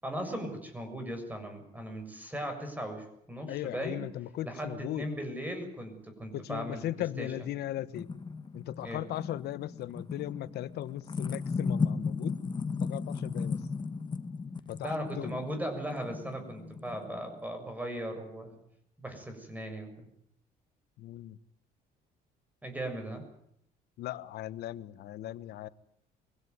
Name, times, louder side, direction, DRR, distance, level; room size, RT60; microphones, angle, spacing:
voice 1, 0.0-4.1 4.4-7.3 8.8-9.0 14.8-18.5 19.0-20.1 22.6-23.2, right 1 dB, 10° right, 5 dB, 7.0 m, -38 dB
voice 2, 3.5-5.1 6.3-8.1 8.5-12.4 12.8-13.6 14.7-15.3 21.0-21.4 24.0-25.7, left 13 dB, 75° left, 16 dB, 1.2 m, -37 dB
sound 1, 7.4-17.4, left 5 dB, 25° left, 1.4 m, -36 dB
23.5 x 16.5 x 9.6 m, 0.72 s
cardioid pair, 110°, 17 cm